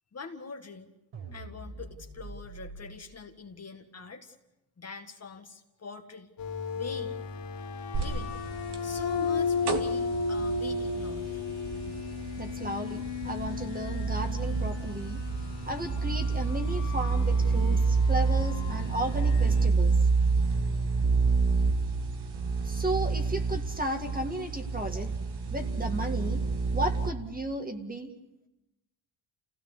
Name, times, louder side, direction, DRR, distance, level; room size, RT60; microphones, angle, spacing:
voice 1, 0.1-0.9 1.3-4.4 4.8-6.3 6.7-7.2 7.9-8.4 8.8-11.4, left 4 dB, 35° left, 4 dB, 1.9 m, -44 dB
sound 1, 1.1-3.0, right 3 dB, 75° right, 4.6 m, -44 dB
sound 2, 6.4-19.7, left 4 dB, 65° left, 3.0 m, -35 dB
sound 3, 7.9-27.1, right 4 dB, 55° right, 2.1 m, -28 dB
voice 2, 12.4-15.2 15.7-19.9 22.6-25.2 25.5-26.4 26.7-28.1, right 1 dB, 20° right, 5 dB, 2.1 m, -34 dB
28.0 x 16.5 x 8.3 m, 0.95 s
cardioid pair, 120°, 46 cm